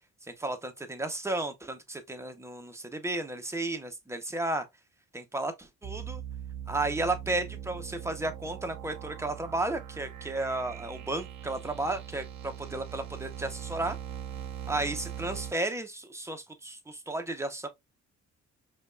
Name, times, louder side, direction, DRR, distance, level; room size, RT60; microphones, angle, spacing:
voice 1, 0.4-4.6 5.1-6.2 6.7-14.0 14.7-17.7, right 2 dB, 10° right, 0.8 m, -33 dB
sound 1, 5.8-15.5, right 10 dB, 65° right, 0.7 m, -41 dB
5.0 x 2.4 x 2.3 m
cardioid pair, 90°, 30 cm